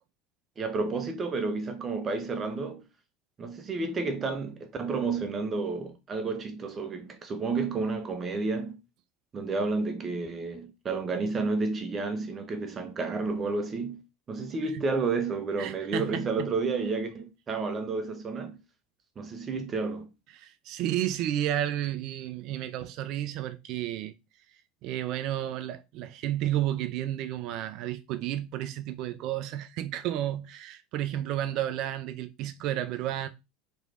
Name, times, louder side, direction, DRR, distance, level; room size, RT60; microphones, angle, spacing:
voice 1, 0.6-2.8 3.4-8.8 9.3-14.0 14.3-18.6 19.2-20.1, right 3 dB, 30° right, 0.7 m, -31 dB
voice 2, 15.6-16.5 20.4-24.1 24.8-33.3, right 12 dB, 55° right, 0.4 m, -32 dB
3.1 x 3.0 x 2.5 m
hypercardioid pair, 75°, 0 cm